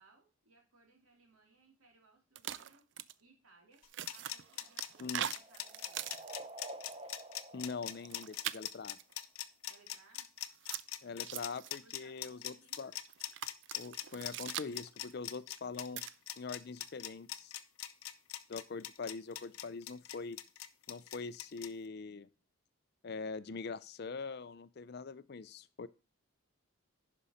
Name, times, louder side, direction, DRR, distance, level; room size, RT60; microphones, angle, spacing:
voice 1, 0.0-2.8 3.2-3.8 4.1-6.3 9.6-10.3 11.8-12.8 23.4-23.6, right 3 dB, 85° right, 1 dB, 2.8 m, -66 dB
sound 1, 2.4-3.1 3.7-6.5 6.9-7.2 7.9-9.1 10.4-11.7 12.9-15.1 15.6-16.1 16.8-17.1, right 11 dB, 55° right, 0.4 m, -42 dB
sound 2, 3.8-21.7, left 13 dB, 85° left, 0.7 m, -42 dB
sound 3, 4.2-8.9, right 2 dB, 25° right, 0.7 m, -51 dB
voice 2, 7.5-9.0 11.0-12.9 13.7-16.0 16.4-17.5 18.5-20.4 20.9-22.3 23.0-25.9, left 4 dB, 50° left, 16 dB, 0.4 m, -43 dB
10.5 x 5.3 x 4.2 m, 0.34 s
head